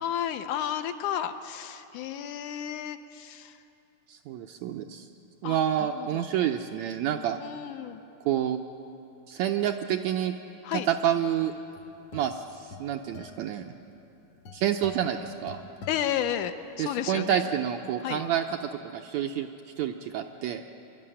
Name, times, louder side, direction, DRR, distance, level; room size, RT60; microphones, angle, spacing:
voice 1, 0.0-3.5 5.4-5.6 6.0-6.2 7.4-8.0 10.6-10.9 15.9-17.4 18.0-18.2, left 10 dB, 80° left, 9 dB, 2.0 m, -32 dB
voice 2, 4.1-5.1 5.4-7.4 8.2-8.6 9.3-10.3 10.7-11.5 12.1-13.7 14.5-15.6 16.8-18.6 18.8-19.5 19.8-20.6, right 10 dB, 80° right, 5 dB, 1.7 m, -28 dB
sound 1, 11.5-17.0, left 4 dB, 60° left, 1.8 m, -47 dB
24.0 x 12.0 x 9.9 m, 2.8 s
omnidirectional pair, 3.7 m